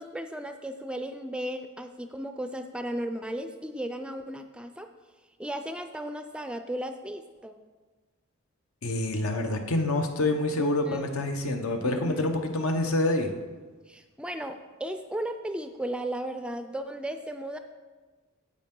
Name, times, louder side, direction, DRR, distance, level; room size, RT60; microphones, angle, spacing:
voice 1, 0.0-4.9 5.4-7.6 10.6-11.1 11.8-12.3 13.9-17.6, right 1 dB, 5° right, 8 dB, 0.3 m, -35 dB
voice 2, 8.8-13.3, left 2 dB, 80° left, 5 dB, 1.0 m, -27 dB
10.0 x 7.5 x 3.8 m, 1.3 s
head